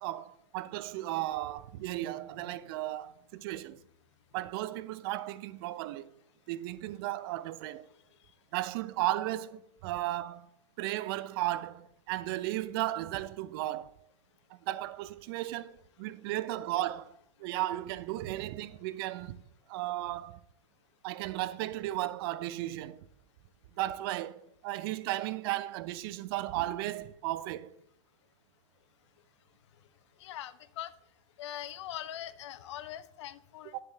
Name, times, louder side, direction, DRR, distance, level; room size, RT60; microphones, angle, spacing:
voice 1, 0.0-3.8 4.3-6.1 6.5-7.9 8.5-10.5 10.8-13.9 14.5-19.4 19.7-20.4 21.0-23.1 23.8-27.7 33.6-33.8, right 15 dB, 45° right, 0.6 m, -35 dB
voice 2, 30.2-30.9 31.4-33.8, left 12 dB, 60° left, 0.7 m, -42 dB
10.5 x 7.3 x 3.3 m
hypercardioid pair, 125°, 17 cm